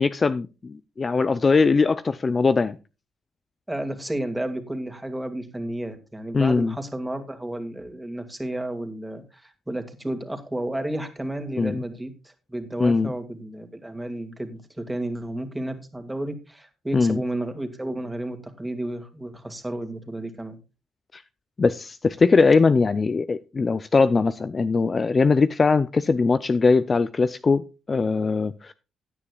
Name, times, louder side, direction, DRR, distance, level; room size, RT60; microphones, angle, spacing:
voice 1, 0.0-2.8 6.3-6.7 11.6-11.8 12.8-13.1 16.9-17.2 21.1-21.2 21.6-28.7, left 4 dB, 35° left, 0.5 m, -21 dB
voice 2, 3.7-20.6, right 1 dB, 10° right, 2.4 m, -32 dB
16.5 x 9.7 x 2.4 m
cardioid pair, 90°, 0 cm